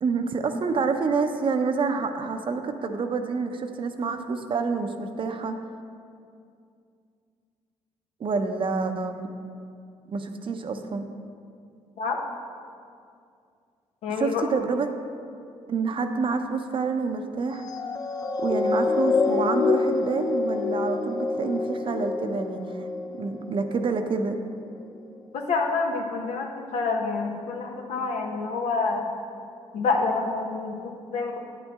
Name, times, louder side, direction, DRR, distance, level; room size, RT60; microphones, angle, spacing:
voice 1, 0.0-5.5 8.2-9.3 10.1-11.1 14.2-14.9 15.7-17.6 18.4-22.9 23.2-24.4, right 4 dB, 45° right, 7 dB, 0.7 m, -27 dB
voice 2, 14.0-14.4 25.3-29.0 29.7-31.4, left 4 dB, 75° left, 2 dB, 1.0 m, -27 dB
sound 1, 17.6-24.2 24.9-25.0, left 4 dB, 35° left, 0.6 m, -27 dB
8.8 x 8.1 x 3.6 m, 2.4 s
cardioid pair, 80°, 12 cm